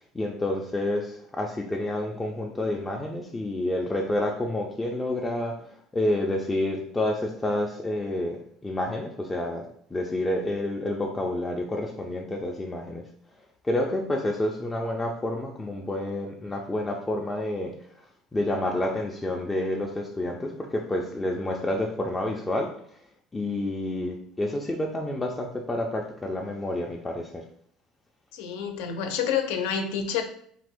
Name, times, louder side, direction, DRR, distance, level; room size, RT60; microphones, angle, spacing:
voice 1, 0.0-13.0 13.6-17.7 18.3-23.0 23.3-27.4, left 1 dB, 15° left, 0 dB, 0.4 m, -29 dB
voice 2, 28.3-30.2, left 7 dB, 85° left, 6 dB, 0.5 m, -28 dB
2.9 x 2.5 x 3.5 m, 0.64 s
cardioid pair, 115°, 0 cm